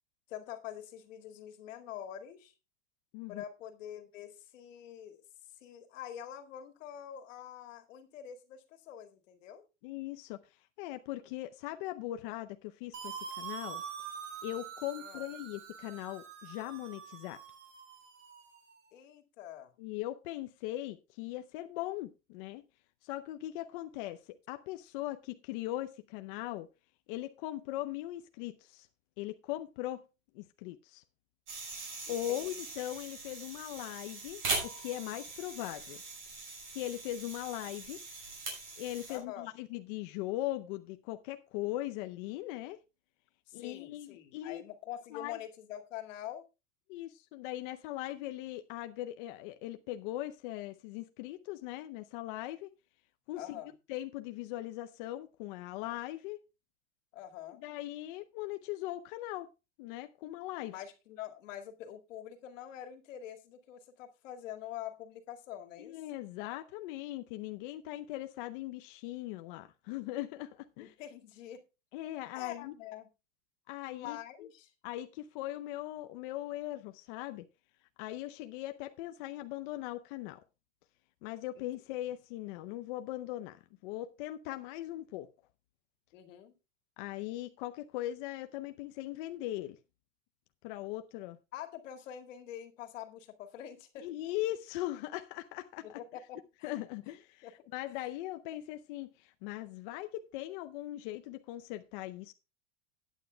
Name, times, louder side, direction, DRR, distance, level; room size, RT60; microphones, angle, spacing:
voice 1, 0.3-2.5 3.3-5.2 5.6-9.6 15.0-15.2 18.9-19.7 32.1-32.6 39.1-39.5 43.5-46.4 53.4-53.7 57.1-57.6 60.7-66.0 70.8-71.6 72.3-73.1 73.8-74.7 81.6-81.7 86.1-86.6 91.5-94.1 95.8-96.8 97.4-98.0, left 11 dB, 80° left, 2.1 m, -45 dB
voice 2, 3.1-3.4 9.8-10.4 10.8-13.8 14.4-17.4 19.8-22.6 23.0-26.7 27.1-28.9 29.2-30.0 30.3-31.0 32.1-36.0 36.7-38.0 38.8-42.8 43.5-44.6 45.1-45.4 46.9-52.7 53.3-53.6 53.9-56.4 57.5-59.5 59.8-60.7 65.8-70.9 71.9-72.7 73.7-74.2 74.8-77.5 78.0-80.4 81.2-85.3 87.0-89.8 90.6-91.4 94.0-96.0 96.6-102.3, left 15 dB, 45° left, 0.6 m, -40 dB
sound 1, 12.9-18.7, right 7 dB, 90° right, 4.4 m, -45 dB
sound 2, 31.5-39.2, right 3 dB, 35° right, 6.1 m, -41 dB
17.0 x 9.3 x 2.2 m
supercardioid pair, 165°, 37 cm